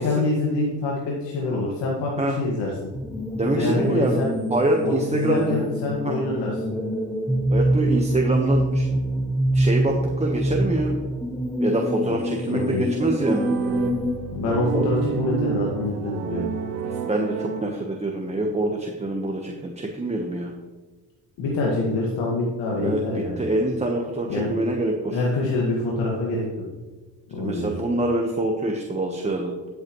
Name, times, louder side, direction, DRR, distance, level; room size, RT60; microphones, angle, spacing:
voice 1, 0.0-2.9 3.5-4.3 4.8-6.7 12.0-12.2 12.5-12.9 14.3-16.4 21.4-23.4 24.3-24.5 25.1-26.5 27.3-27.7, left 2 dB, 80° left, -4 dB, 2.0 m, -25 dB
sound 1, 2.9-14.2, right 1 dB, ahead, 0.8 m, -25 dB
voice 2, 3.3-4.2 4.5-5.6 6.0-6.1 7.5-8.9 9.5-11.0 11.6-13.5 14.7-14.9 17.0-20.5 22.7-25.2 27.4-29.5, right 2 dB, 15° right, 1 dB, 1.2 m, -25 dB
sound 2, 13.2-18.2, right 8 dB, 80° right, 1.1 m, -30 dB
12.5 x 8.0 x 3.1 m, 1.3 s
cardioid pair, 95°, 43 cm